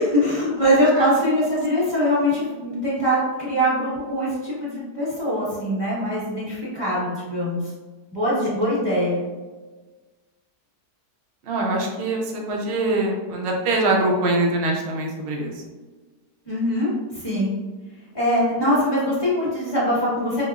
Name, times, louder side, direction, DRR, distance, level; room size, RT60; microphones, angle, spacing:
voice 1, 0.0-7.6 8.1-9.2 16.5-17.5 18.1-20.4, equal, 20° left, -9 dB, 1.0 m, -22 dB
voice 2, 8.5-8.9 11.4-15.5, right 2 dB, 80° right, 0 dB, 0.5 m, -23 dB
4.8 x 2.1 x 2.4 m, 1.3 s
omnidirectional pair, 1.8 m